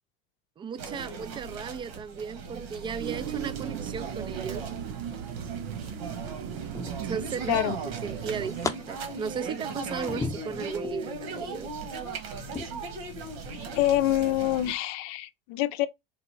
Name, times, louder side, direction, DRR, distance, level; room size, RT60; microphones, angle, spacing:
voice 1, 0.6-4.7 7.0-11.7, right 6 dB, 15° right, 0.3 m, -36 dB
sound 1, 0.8-14.7, right 4 dB, 80° right, 1.5 m, -38 dB
sound 2, 3.0-8.7, right 10 dB, 60° right, 0.8 m, -38 dB
sound 3, 5.6-6.0 6.7-7.6 8.0-8.7 9.2-11.0 11.5-11.8 12.5-12.7, left 3 dB, 10° left, 0.7 m, -37 dB
voice 2, 13.7-15.9, left 14 dB, 60° left, 0.6 m, -26 dB
4.0 x 2.2 x 4.4 m
supercardioid pair, 115°, 30 cm